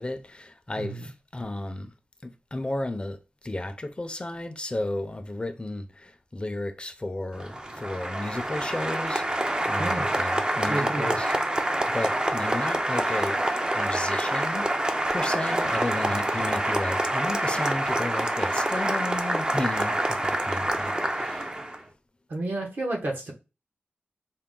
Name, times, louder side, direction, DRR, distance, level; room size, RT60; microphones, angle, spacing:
voice 1, 0.0-1.9 2.2-11.3 11.7-14.7 15.1-21.5, left 2 dB, 30° left, 0.5 m, -33 dB
voice 2, 0.8-1.1 9.8-10.2 10.7-11.2 16.0-16.2 22.3-23.3, right 2 dB, 65° right, 1.2 m, -31 dB
Applause, 7.3-21.8, right 1 dB, 25° right, 0.5 m, -27 dB
4.4 x 2.2 x 3.7 m
wide cardioid pair, 90°, 4 cm